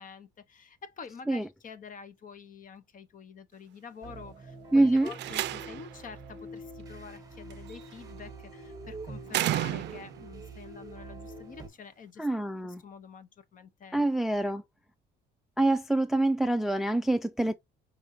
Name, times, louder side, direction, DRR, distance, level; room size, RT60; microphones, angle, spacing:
voice 1, 0.0-12.3 12.6-14.0 14.4-14.6, left 6 dB, 45° left, 1.0 m, -47 dB
sound 1, 4.0-11.7, right 2 dB, 20° right, 1.3 m, -45 dB
voice 2, 4.7-5.1 12.2-12.8 13.9-14.6 15.6-17.5, right 2 dB, ahead, 0.3 m, -25 dB
Slam, 5.0-6.0 7.5-7.9 9.3-10.3, right 15 dB, 65° right, 0.4 m, -32 dB
5.3 x 3.5 x 2.6 m
cardioid pair, 120°, 19 cm